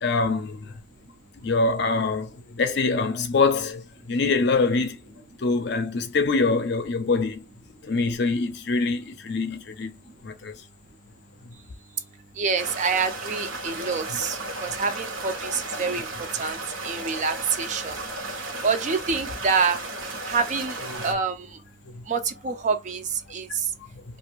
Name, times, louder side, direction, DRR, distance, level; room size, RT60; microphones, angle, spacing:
voice 1, 0.0-0.7 1.4-5.0 5.4-7.5 7.8-10.0 10.2-10.5 20.9-21.1 21.9-22.0, left 3 dB, 55° left, 0.5 m, -24 dB
voice 2, 12.4-16.1 16.4-18.0 18.2-19.8 20.3-20.8 21.0-21.5 22.1-23.5, right 5 dB, 40° right, 0.4 m, -27 dB
sound 1, 12.6-21.1, right 2 dB, 90° right, 1.0 m, -34 dB
2.5 x 2.4 x 3.0 m
head